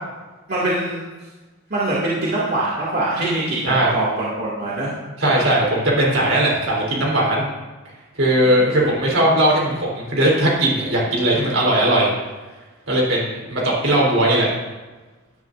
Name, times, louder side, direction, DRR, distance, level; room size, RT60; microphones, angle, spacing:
voice 1, 0.5-1.0 1.7-4.9, right 2 dB, 50° right, -7 dB, 2.4 m, -23 dB
voice 2, 5.2-7.4 8.2-12.1 12.9-14.5, right 1 dB, 75° right, -3 dB, 3.9 m, -18 dB
16.0 x 10.5 x 2.6 m, 1.2 s
head